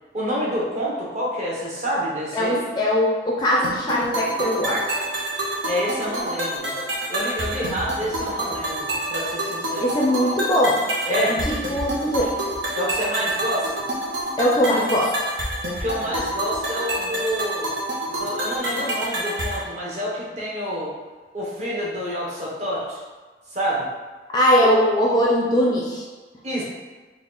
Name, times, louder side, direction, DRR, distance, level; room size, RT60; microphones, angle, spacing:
voice 1, 0.1-2.6 5.6-6.7 7.1-9.9 11.1-11.3 12.7-13.7 15.6-17.7 18.1-20.9 21.3-23.0 23.5-23.9 24.6-24.8 26.4-26.6, equal, 40° right, -5 dB, 1.0 m, -28 dB
voice 2, 2.3-4.8 9.8-10.8 11.1-12.3 14.4-15.1 24.3-26.0, equal, 20° left, -3 dB, 0.4 m, -20 dB
sound 1, 3.6-19.6, right 1 dB, 80° right, 0.9 m, -28 dB
4.2 x 2.4 x 3.9 m, 1.3 s
head